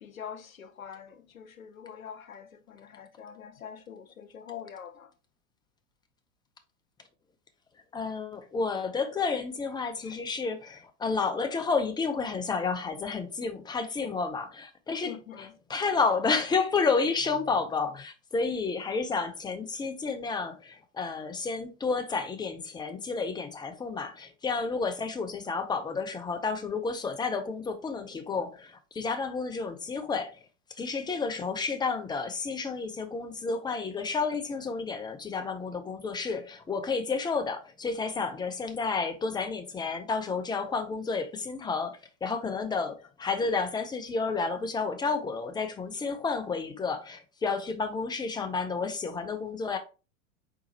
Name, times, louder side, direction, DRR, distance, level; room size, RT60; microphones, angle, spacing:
voice 1, 0.0-5.1 15.0-15.5, left 8 dB, 85° left, 0.7 m, -44 dB
voice 2, 7.9-30.4 30.8-49.8, left 4 dB, 10° left, 0.6 m, -31 dB
4.6 x 4.2 x 2.7 m
figure-of-eight pair, 90°, 40 cm